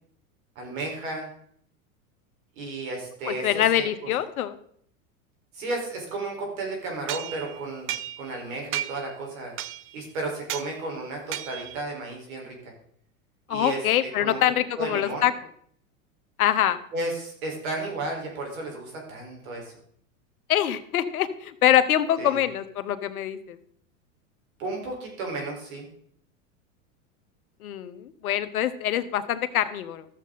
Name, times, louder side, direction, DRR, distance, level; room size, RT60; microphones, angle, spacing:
voice 1, 0.5-1.3 2.6-4.1 5.5-7.9 8.2-9.5 9.9-12.7 13.5-13.8 14.2-14.4 14.8-15.2 16.9-19.7 22.2-22.4 24.6-25.9, right 2 dB, 70° right, 1 dB, 4.5 m, -33 dB
voice 2, 3.3-4.6 13.5-15.3 16.4-16.8 20.5-23.6 27.6-30.1, left 11 dB, 90° left, 12 dB, 1.0 m, -24 dB
sound 1, 7.1-8.4 8.7-9.1 9.6-10.0 10.5-10.7 11.3-11.8, right 12 dB, 30° right, 0.5 m, -34 dB
13.5 x 7.6 x 3.9 m, 0.64 s
hypercardioid pair, 110°, 42 cm